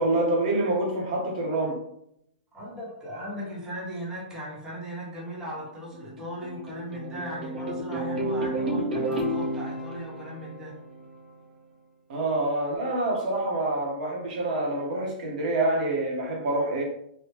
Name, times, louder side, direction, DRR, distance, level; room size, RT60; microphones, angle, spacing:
voice 1, 0.0-1.8 12.1-16.8, right 2 dB, 60° right, 0.9 m, -26 dB
voice 2, 2.5-10.7, equal, 10° right, 0.9 m, -38 dB
sound 1, 5.7-11.3, right 1 dB, 80° right, 1.1 m, -31 dB
3.3 x 2.1 x 3.0 m
hypercardioid pair, 155°, 5 cm